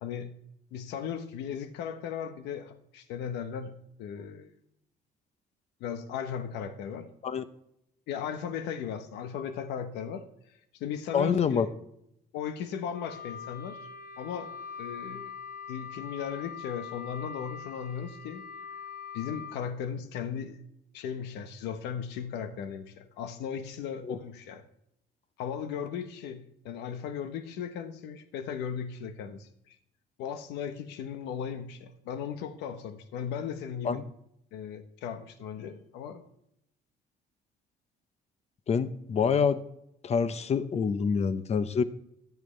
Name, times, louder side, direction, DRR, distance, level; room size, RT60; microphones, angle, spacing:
voice 1, 0.0-0.3 0.7-4.5 5.8-7.1 8.1-10.2 10.7-11.7 12.3-13.8 14.2-14.5 14.8-15.3 15.7-18.4 19.1-20.6 20.9-24.6 25.4-29.8 30.2-34.0 34.5-36.2, left 7 dB, 90° left, 9 dB, 1.2 m, -37 dB
voice 2, 11.1-11.7 24.1-24.2 33.8-34.0 38.7-39.6 40.0-41.8, left 6 dB, 40° left, 13 dB, 0.9 m, -26 dB
Wind instrument woodwind instrument, 12.9-19.6, left 6 dB, 65° left, 1.6 m, -43 dB
14.0 x 11.0 x 3.3 m, 0.78 s
cardioid pair, 110°, 17 cm